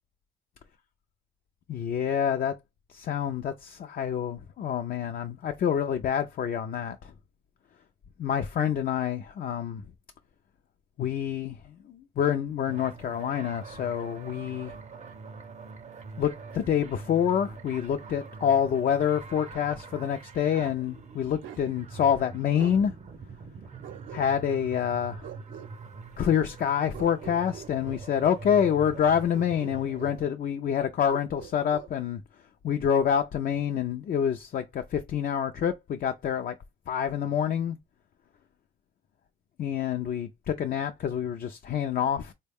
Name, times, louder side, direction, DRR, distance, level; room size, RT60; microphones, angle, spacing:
voice 1, 1.7-2.6 2.9-7.1 8.2-9.8 11.0-14.7 16.2-22.9 24.1-25.3 26.2-32.2 32.6-36.5 36.9-37.8 39.6-42.3, left 8 dB, 45° left, 0.4 m, -27 dB
sound 1, 12.7-30.3, right 4 dB, 35° right, 0.5 m, -44 dB
Bark, 21.4-21.7 22.5-22.8 23.8-24.5 25.2-25.7 26.9-28.1 29.3-30.2 31.1-31.9, right 10 dB, 75° right, 0.7 m, -44 dB
3.7 x 2.2 x 3.4 m
cardioid pair, 90°, 20 cm